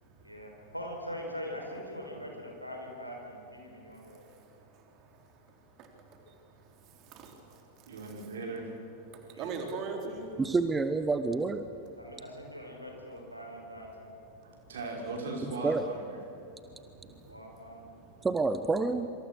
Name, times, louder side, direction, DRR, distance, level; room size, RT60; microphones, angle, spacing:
voice 1, 0.2-4.2 9.3-9.5 12.0-14.2 17.3-17.9 18.2-18.3, equal, 90° right, 1 dB, 4.9 m, -42 dB
voice 2, 3.6-8.3 9.1-10.4 14.3-14.7 16.4-17.6 17.8-18.3, right 4 dB, 35° right, 3 dB, 3.6 m, -45 dB
voice 3, 7.9-8.7 14.4-16.0, right 2 dB, 65° right, 1 dB, 6.1 m, -38 dB
voice 4, 10.4-11.7 15.6-15.8 18.2-19.1, right 3 dB, 15° right, 11 dB, 1.0 m, -28 dB
27.0 x 25.5 x 6.5 m, 3.0 s
figure-of-eight pair, 90°, 0 cm